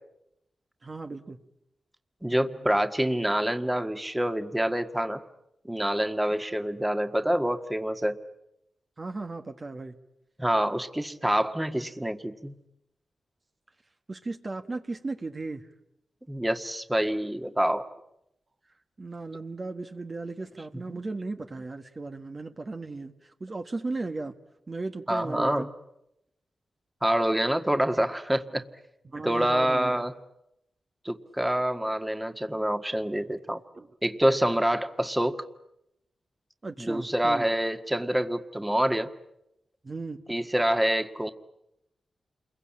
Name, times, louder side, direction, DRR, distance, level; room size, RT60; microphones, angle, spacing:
voice 1, 0.8-1.4 9.0-10.0 14.1-15.6 19.0-24.3 24.7-25.7 29.1-30.0 33.7-33.9 36.6-37.5 39.8-40.2, right 3 dB, 40° right, 6 dB, 1.6 m, -36 dB
voice 2, 2.2-5.2 5.6-8.2 10.4-12.5 16.3-17.9 20.9-21.0 25.1-25.7 27.0-28.7 29.2-30.1 31.0-33.6 34.0-35.4 36.8-39.1 40.3-41.3, right 1 dB, 10° right, 7 dB, 1.7 m, -26 dB
28.5 x 22.0 x 8.8 m, 0.84 s
cardioid pair, 60°, 0 cm